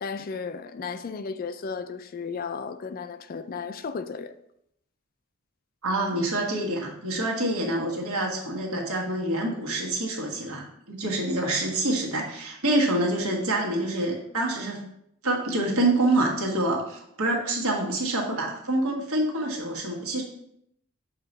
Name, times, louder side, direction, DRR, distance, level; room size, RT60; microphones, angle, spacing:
voice 1, 0.0-4.3, left 5 dB, 40° left, 0.3 m, -34 dB
voice 2, 5.8-14.8 15.2-20.2, right 1 dB, 75° right, 1.5 m, -26 dB
6.5 x 3.0 x 5.3 m
head